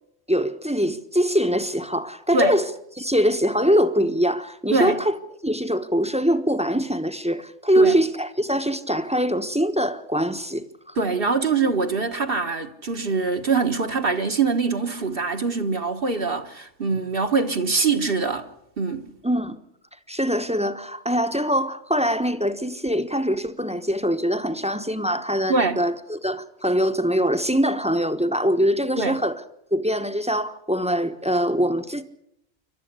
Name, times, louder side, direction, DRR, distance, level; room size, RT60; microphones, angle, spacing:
voice 1, 0.3-2.7 3.0-5.2 5.4-11.0 19.2-19.6 20.1-29.4 29.7-32.0, equal, 5° right, 1.0 m, -23 dB
voice 2, 4.7-5.0 7.8-8.0 11.0-18.5 18.8-19.1 25.5-25.8 29.0-29.2, right 4 dB, 55° right, 1.5 m, -23 dB
28.0 x 12.5 x 8.2 m
omnidirectional pair, 1.2 m